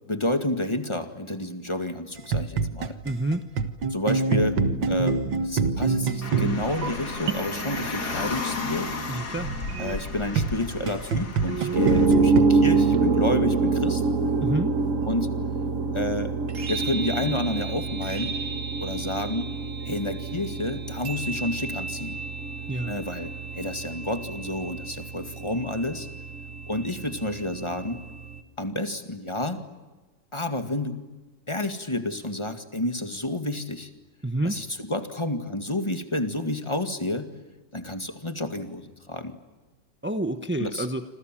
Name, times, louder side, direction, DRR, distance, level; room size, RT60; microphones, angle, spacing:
voice 1, 0.1-3.0 3.9-4.6 4.9-8.9 9.8-14.0 15.1-15.3 15.9-16.3 16.7-18.3 18.8-19.5 19.8-22.2 22.9-26.1 26.7-28.0 28.6-29.6 30.3-31.0 31.5-33.9 34.4-37.3 37.7-39.4 40.6-40.9, left 1 dB, 15° left, 7 dB, 2.0 m, -30 dB
sound 1, 2.3-10.0 10.3-12.4, right 5 dB, 85° right, 2.2 m, -27 dB
voice 2, 3.0-3.4 9.1-9.5 14.4-14.7 22.7-22.9 34.2-34.6 40.0-41.0, right 1 dB, 10° right, 8 dB, 0.6 m, -28 dB
Car, 6.2-12.1, left 4 dB, 55° left, 2.8 m, -34 dB
sound 2, 11.7-28.4, right 3 dB, 45° right, 1.7 m, -26 dB
28.0 x 26.5 x 7.7 m, 1.2 s
omnidirectional pair, 2.0 m